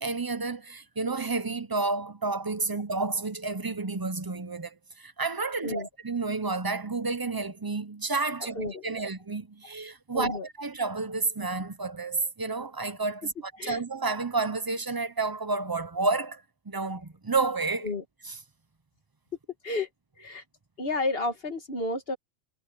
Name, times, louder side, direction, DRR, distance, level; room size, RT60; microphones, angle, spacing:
voice 1, 0.0-13.3 13.7-17.9, right 3 dB, 25° right, 0.6 m, -30 dB
voice 2, 8.4-9.0 10.1-10.5 13.6-13.8 17.8-18.0 19.6-19.9 20.2-20.4 20.8-22.2, left 2 dB, 55° left, 2.4 m, -31 dB
omnidirectional pair, 1.2 m